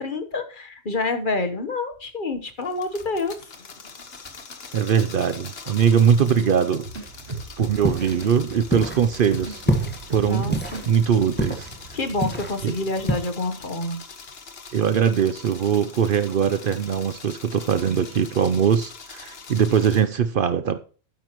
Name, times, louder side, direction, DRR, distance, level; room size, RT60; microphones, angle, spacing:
voice 1, 0.0-3.3 10.2-10.6 10.9-11.0 11.9-14.0, left 3 dB, 50° left, 1.3 m, -27 dB
sound 1, 2.6-20.0, left 4 dB, 70° left, 1.5 m, -43 dB
voice 2, 4.7-6.9 7.6-9.8 10.1-11.7 12.6-12.8 14.7-20.8, right 7 dB, 60° right, 0.8 m, -21 dB
sound 2, 6.8-12.5, right 3 dB, 80° right, 3.3 m, -37 dB
sound 3, 7.7-13.2, equal, 10° left, 1.4 m, -29 dB
12.5 x 9.3 x 3.0 m
omnidirectional pair, 1.1 m